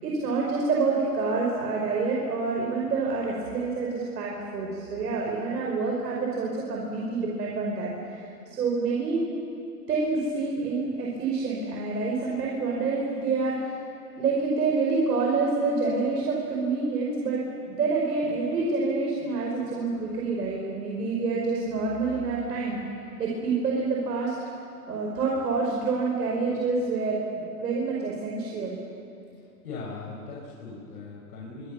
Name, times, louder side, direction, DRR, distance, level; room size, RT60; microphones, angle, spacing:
voice 1, 0.0-9.2 9.9-13.7 14.2-22.8 23.2-24.3 24.9-28.8, right 4 dB, 75° right, -2 dB, 5.4 m, -27 dB
voice 2, 29.6-31.7, left 3 dB, 70° left, -4 dB, 6.4 m, -39 dB
29.5 x 25.5 x 7.0 m, 2.9 s
hypercardioid pair, 125°, 48 cm